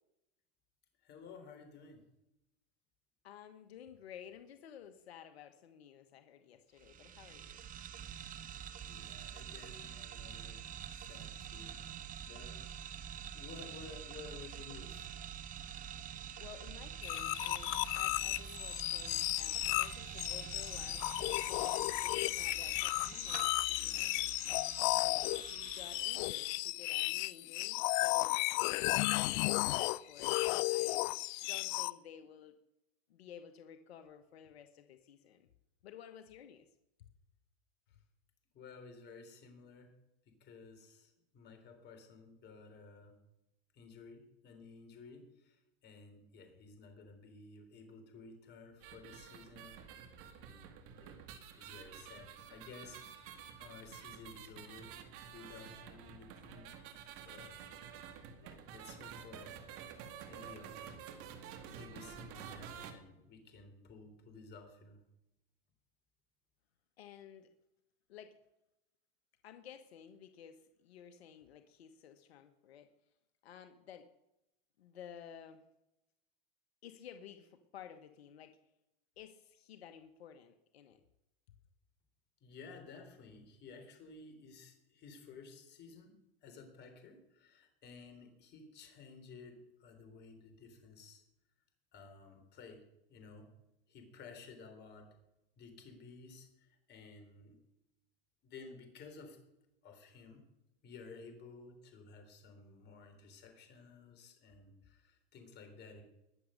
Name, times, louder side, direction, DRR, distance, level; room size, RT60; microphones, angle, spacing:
voice 1, 1.0-2.0 8.8-12.6 13.2-15.1 38.5-39.9 40.3-43.2 43.7-49.8 50.4-51.2 51.5-55.0 55.3-56.8 57.2-57.6 58.4-59.6 59.9-60.8 61.8-65.0 82.4-91.2 91.9-92.8 93.1-93.5 93.9-95.1 95.6-97.6 98.4-99.4 99.8-100.4 100.8-106.0, left 4 dB, 35° left, 5 dB, 3.8 m, -54 dB
voice 2, 3.2-7.6 16.4-24.3 24.8-28.4 29.0-31.0 31.4-32.6 33.1-35.5 35.8-36.6 37.0-37.1 67.0-67.5 68.1-68.3 69.4-72.9 73.4-74.1 74.8-75.6 76.8-78.6 79.2-81.0 81.5-81.6, left 8 dB, 85° left, 8 dB, 1.2 m, -54 dB
sound 1, 6.8-26.5, right 9 dB, 25° right, 0.9 m, -47 dB
sound 2, 17.0-31.9, left 22 dB, 50° left, 0.5 m, -34 dB
sound 3, 48.8-62.9, right 8 dB, 50° right, 2.0 m, -50 dB
20.5 x 7.3 x 6.5 m, 0.88 s
supercardioid pair, 120°, 31 cm